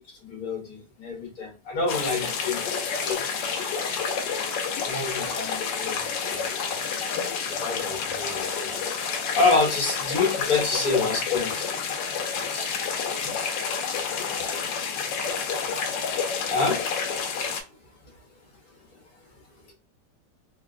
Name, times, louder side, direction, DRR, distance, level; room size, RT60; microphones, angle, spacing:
voice 1, 0.2-2.6 3.0-3.2 4.9-6.7 7.5-8.8 9.3-11.7 12.5-12.7 13.2-13.5 16.5-16.9, left 3 dB, 60° left, 0 dB, 1.4 m, -27 dB
sound 1, 1.9-17.6, left 6 dB, 85° left, 1.3 m, -29 dB
3.6 x 2.1 x 2.3 m, 0.31 s
omnidirectional pair, 1.9 m